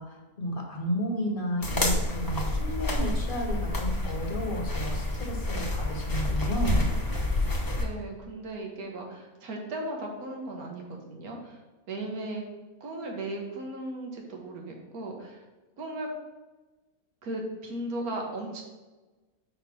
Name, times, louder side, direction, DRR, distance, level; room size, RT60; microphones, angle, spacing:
voice 1, 0.0-6.8, equal, 40° left, 2 dB, 1.1 m, -32 dB
sound 1, 1.6-7.8, left 1 dB, 20° left, 0.7 m, -28 dB
voice 2, 7.8-11.6 11.9-12.4 12.8-15.4 15.8-16.1 17.2-18.6, right 1 dB, 85° right, 1 dB, 1.6 m, -36 dB
5.1 x 4.1 x 5.9 m, 1.2 s
omnidirectional pair, 1.5 m